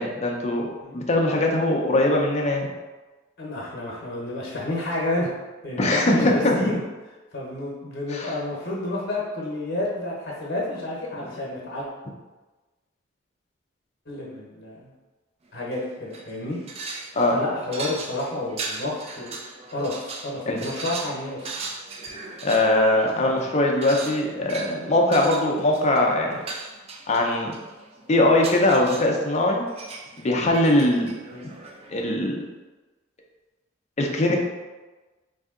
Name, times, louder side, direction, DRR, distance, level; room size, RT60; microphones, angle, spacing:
voice 1, 0.0-0.7 0.9-2.7 5.8-6.7 8.1-8.3 17.1-17.4 20.5-20.6 22.4-26.4 27.1-27.6 28.1-29.6 30.2-31.1 31.9-32.4 34.0-34.4, left 1 dB, 35° left, 0 dB, 0.5 m, -21 dB
voice 2, 3.4-5.3 5.6-6.8 7.3-11.9 14.1-14.9 15.5-16.6 17.3-19.3 19.7-21.5 31.3-31.5, left 2 dB, 50° left, -4 dB, 0.9 m, -30 dB
sound 1, 15.6-15.8 16.1-32.0, right 3 dB, 30° right, 0.3 m, -38 dB
3.3 x 2.7 x 3.6 m, 1.2 s
head